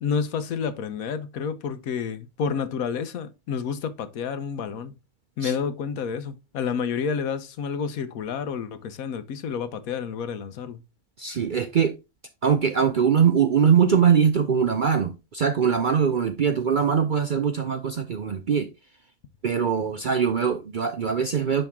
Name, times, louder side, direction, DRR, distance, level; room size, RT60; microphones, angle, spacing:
voice 1, 0.0-4.9 5.4-10.8, left 6 dB, 80° left, 1.2 m, -29 dB
voice 2, 11.2-12.0 12.4-18.7 19.4-21.6, right 7 dB, 60° right, 0.5 m, -22 dB
10.0 x 3.4 x 3.5 m
omnidirectional pair, 1.4 m